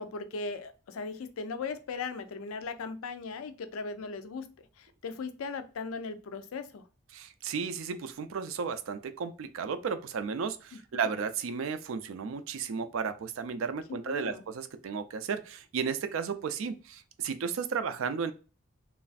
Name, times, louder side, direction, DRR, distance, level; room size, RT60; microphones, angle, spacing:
voice 1, 0.0-4.5 4.8-6.8 10.9-11.1 14.1-14.4, left 4 dB, 85° left, 10 dB, 0.4 m, -38 dB
voice 2, 7.1-18.3, right 6 dB, 75° right, 10 dB, 0.4 m, -34 dB
3.1 x 2.4 x 2.4 m, 0.34 s
head